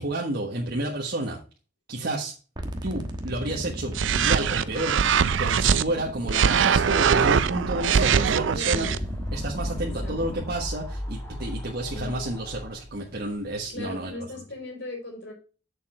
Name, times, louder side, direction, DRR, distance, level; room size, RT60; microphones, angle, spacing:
voice 1, 0.0-1.4 1.9-2.3 2.8-5.0 5.4-8.9 9.3-14.1, right 1 dB, 55° right, -2 dB, 1.5 m, -30 dB
sound 1, 2.6-10.6, equal, 25° right, 1.2 m, -37 dB
sound 2, 3.9-5.8 6.3-9.0, right 7 dB, 80° right, 0.5 m, -22 dB
sound 3, 8.4-14.0, left 1 dB, 15° left, 4.9 m, -35 dB
voice 2, 8.5-9.0 9.8-10.4 11.9-12.3 13.7-15.3, left 2 dB, 65° left, 0 dB, 4.7 m, -38 dB
6.9 x 6.8 x 4.3 m, 0.35 s
head